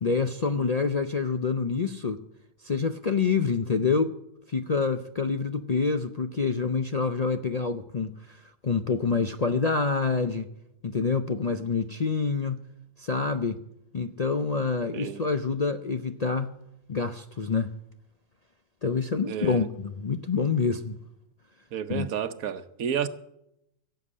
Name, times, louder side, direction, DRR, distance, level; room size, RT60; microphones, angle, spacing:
voice 1, 0.0-2.2 2.6-4.1 4.5-10.5 10.8-12.7 13.0-13.6 13.9-16.6 16.9-17.7 18.8-21.0 21.9-22.1, left 4 dB, 45° left, 0.5 m, -27 dB
voice 2, 19.3-19.7 21.7-23.1, right 8 dB, 75° right, 1.3 m, -31 dB
16.5 x 7.9 x 8.5 m
omnidirectional pair, 1.5 m